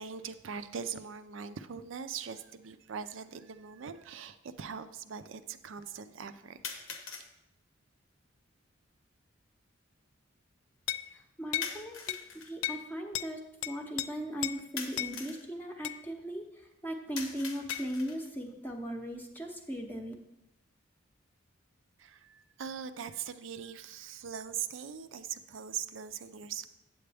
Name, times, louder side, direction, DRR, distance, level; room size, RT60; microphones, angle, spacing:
voice 1, 0.0-6.6 22.0-26.7, right 7 dB, 70° right, 11 dB, 0.5 m, -41 dB
sound 1, 2.3-2.4 3.4-3.5 6.6-7.3 11.6-12.5 14.8-15.5 17.2-18.3, left 5 dB, 90° left, 1.0 m, -42 dB
sound 2, 10.9-11.1 11.5-11.7 12.1-12.2 12.6-12.8 13.1-13.3 13.6-14.1 14.4-14.6 15.0-15.1 15.8-16.0 17.7-17.9, left 14 dB, 70° left, 0.3 m, -34 dB
voice 2, 11.1-12.2 12.5-20.1, equal, 10° left, 2 dB, 0.7 m, -38 dB
8.5 x 7.8 x 3.4 m, 0.92 s
head